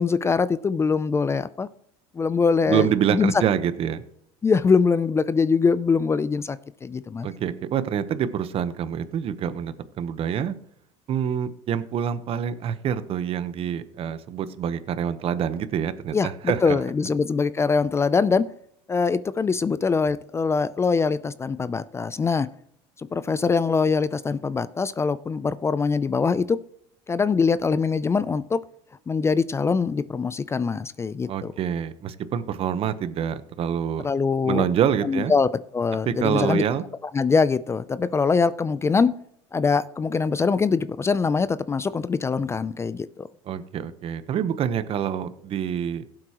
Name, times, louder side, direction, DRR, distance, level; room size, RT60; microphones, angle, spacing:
voice 1, 0.0-1.7 2.2-3.3 4.4-7.3 16.1-18.4 18.9-22.5 23.0-26.6 27.1-28.6 29.1-31.5 34.0-34.7 35.0-35.5 35.7-36.6 37.1-39.1 39.5-43.3, left 5 dB, 20° left, 16 dB, 0.4 m, -23 dB
voice 2, 2.7-4.0 7.2-10.5 11.1-16.8 31.3-34.1 34.4-35.3 36.0-36.8 43.5-46.0, right 8 dB, 45° right, 12 dB, 1.0 m, -26 dB
17.0 x 7.7 x 3.0 m, 0.70 s
supercardioid pair, 105°, 14 cm